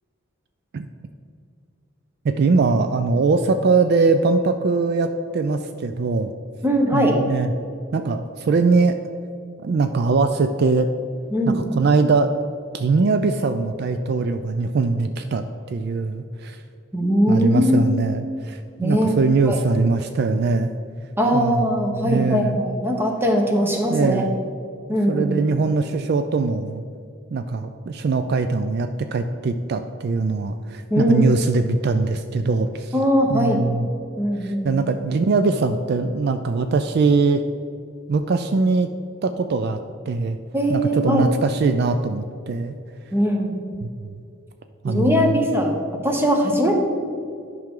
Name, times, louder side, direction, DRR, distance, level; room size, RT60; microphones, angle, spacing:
voice 1, 2.2-6.3 6.9-7.5 7.9-9.0 9.6-10.9 11.5-12.3 12.7-16.6 17.3-20.7 21.3-22.6 23.6-24.3 25.1-26.8 27.3-32.9 33.3-33.8 34.4-37.4 38.1-38.9 39.2-39.8 40.1-40.4 40.7-42.7 43.8-44.1 44.8-45.4, right 4 dB, 55° right, 8 dB, 0.4 m, -21 dB
voice 2, 6.6-7.2 11.3-11.7 16.9-18.0 18.8-19.6 21.2-24.3 24.9-25.3 30.9-31.4 32.9-33.6 34.2-34.8 40.5-41.3 43.1-43.6 44.8-46.7, equal, 10° right, 1 dB, 1.1 m, -20 dB
10.5 x 6.0 x 3.7 m, 2.4 s
head